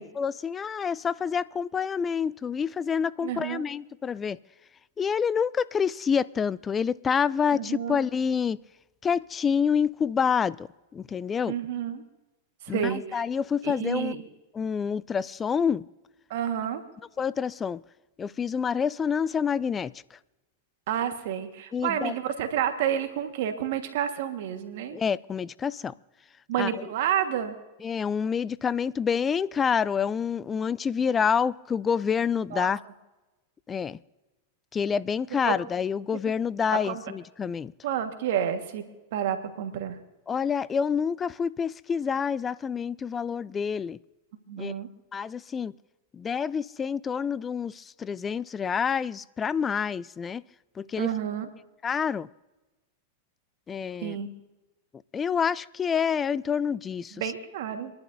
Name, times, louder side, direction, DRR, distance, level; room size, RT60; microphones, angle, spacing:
voice 1, 0.2-4.4 5.0-8.6 9.0-11.6 12.7-14.2 14.5-15.8 17.2-17.8 18.2-20.2 21.7-22.2 24.9-25.9 26.6-26.7 27.8-32.8 33.7-34.0 34.7-37.7 40.3-44.0 44.6-44.7 45.1-45.7 46.1-50.4 50.8-51.1 51.8-52.3 53.7-54.2 55.1-57.2, left 6 dB, 20° left, 0.4 m, -27 dB
voice 2, 3.2-3.7 7.5-8.0 11.5-12.0 12.6-13.2 13.6-14.2 16.3-16.8 20.9-25.0 26.5-27.6 32.5-32.7 35.5-35.6 36.8-37.0 37.8-38.8 39.1-40.0 44.5-44.9 51.0-51.5 54.0-54.3 57.1-57.9, right 9 dB, 65° right, 1.5 m, -30 dB
27.0 x 11.5 x 2.7 m
hypercardioid pair, 105°, 0 cm